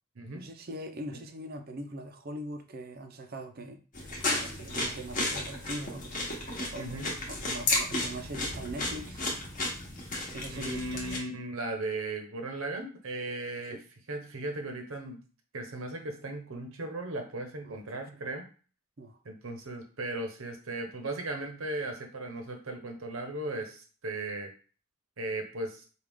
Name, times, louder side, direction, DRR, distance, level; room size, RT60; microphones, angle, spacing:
voice 1, 0.3-3.8 4.4-6.2 6.7-7.0 7.3-9.2 10.3-10.8 13.7-13.8 17.6-17.8 18.2-18.3 19.0-19.2, right 1 dB, 45° right, 7 dB, 0.5 m, -41 dB
sound 1, 3.9-11.2, left 2 dB, 35° left, 1.1 m, -33 dB
voice 2, 6.8-7.1 10.5-13.8 14.1-15.2 15.5-18.5 19.2-24.5 25.2-25.9, right 2 dB, 70° right, 4 dB, 0.8 m, -37 dB
4.9 x 2.4 x 3.5 m, 0.38 s
head